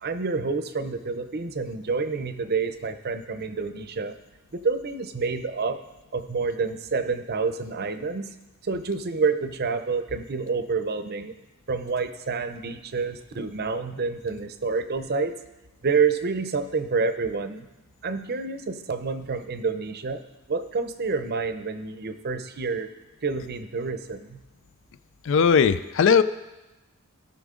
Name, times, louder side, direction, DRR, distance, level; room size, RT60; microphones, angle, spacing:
voice 1, 0.0-4.1 4.5-5.8 6.1-8.3 8.6-11.3 11.7-15.3 15.8-17.7 18.0-20.2 20.5-22.9 23.2-24.4, right 4 dB, 45° right, 10 dB, 0.6 m, -28 dB
voice 2, 25.2-26.2, left 6 dB, 60° left, 13 dB, 0.4 m, -18 dB
17.0 x 6.0 x 3.7 m, 1.0 s
head